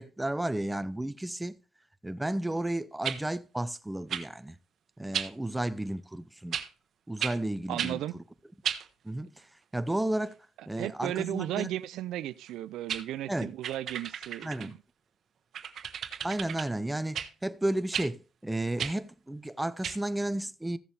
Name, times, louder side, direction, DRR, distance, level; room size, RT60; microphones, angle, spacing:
voice 1, 0.0-1.6 2.0-4.6 5.0-6.6 7.1-8.2 9.0-9.5 9.7-10.4 10.7-11.7 13.3-13.5 14.4-14.8 16.2-20.8, right 1 dB, 10° right, 0.7 m, -33 dB
sound 1, 3.0-3.2 4.1-4.3 5.1-5.3 6.5-6.7 7.2-7.4 7.8-7.9 8.6-8.9 12.5-12.6 12.9-13.0 13.6-14.7 15.5-16.7 17.1-17.3 17.9-18.1 18.8-19.0 19.8-20.0, right 8 dB, 65° right, 1.0 m, -34 dB
voice 2, 7.7-8.2 10.8-14.8, right 13 dB, 90° right, 0.4 m, -35 dB
14.5 x 7.1 x 3.3 m
cardioid pair, 90°, 0 cm